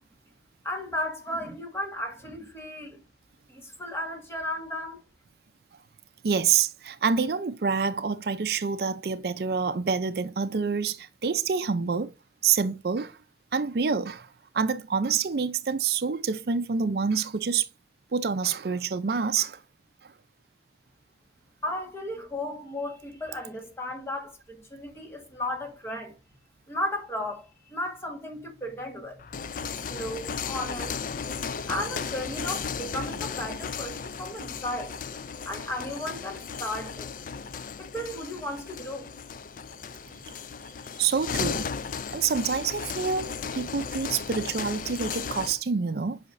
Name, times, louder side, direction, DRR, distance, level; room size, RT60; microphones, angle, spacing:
voice 1, 0.6-3.0 3.5-5.0 21.6-26.2 26.7-29.2 29.6-31.0 31.7-35.0 35.4-37.1 37.8-39.1, left 1 dB, 15° left, 1.5 m, -35 dB
voice 2, 6.2-12.1 12.4-13.2 13.5-14.3 14.5-17.7 18.1-19.6 41.0-41.7 42.1-46.2, right 6 dB, 60° right, 0.5 m, -27 dB
sound 1, 29.2-45.6, left 6 dB, 50° left, 0.4 m, -35 dB
8.3 x 5.7 x 2.6 m
head